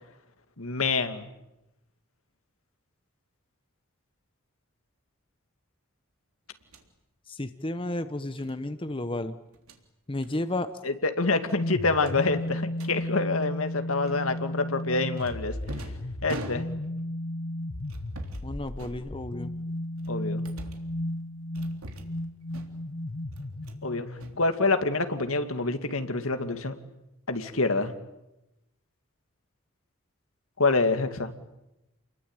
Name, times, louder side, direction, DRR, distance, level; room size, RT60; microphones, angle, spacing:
voice 1, 0.6-1.3 10.8-15.5 16.2-16.7 20.1-20.4 23.8-24.1 24.4-26.7 27.3-27.9 30.6-31.3, left 3 dB, 75° left, 8 dB, 2.3 m, -26 dB
sound 1, 6.6-6.9 8.4-8.6 9.5-9.8 10.2-10.4 10.7-10.9 11.2-11.3 12.0-12.9 14.1-14.5 15.2-17.0 17.8-18.5 18.8-19.5 20.0-20.9 21.5-22.2 22.5-23.0 23.3-23.8 24.1-25.0, right 1 dB, 90° right, 3.5 m, -44 dB
voice 2, 7.3-9.3 10.1-10.7 18.4-19.5, left 1 dB, 25° left, 10 dB, 0.9 m, -32 dB
sound 2, 11.5-24.4, left 1 dB, 60° left, 1.3 m, -34 dB
29.5 x 22.0 x 9.0 m, 0.92 s
head